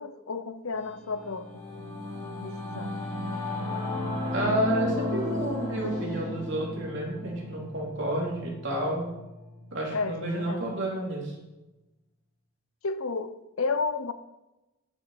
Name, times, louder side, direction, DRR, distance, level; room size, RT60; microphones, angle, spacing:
voice 1, 0.0-1.6 2.4-2.9 9.9-10.8 12.8-14.1, left 4 dB, 80° left, 0.7 m, -32 dB
Singing / Musical instrument, 0.8-10.5, left 1 dB, 15° left, 3.7 m, -35 dB
voice 2, 4.3-9.1 9.7-11.3, right 1 dB, 60° right, 3.2 m, -30 dB
10.0 x 7.2 x 5.7 m
head